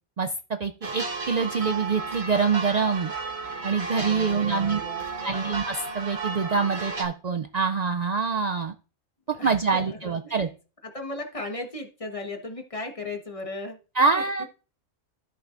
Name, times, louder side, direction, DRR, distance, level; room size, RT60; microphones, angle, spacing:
voice 1, 0.2-3.1 3.6-4.8 5.2-8.7 9.3-10.5 14.0-14.4, right 5 dB, 85° right, 7 dB, 0.3 m, -25 dB
sound 1, 0.8-7.0, right 4 dB, 55° right, 1.5 m, -33 dB
voice 2, 3.9-5.6 9.3-10.4 10.8-13.8 14.4-14.5, left 2 dB, 25° left, 3 dB, 1.2 m, -37 dB
13.5 x 5.7 x 2.5 m, 0.36 s
omnidirectional pair, 1.3 m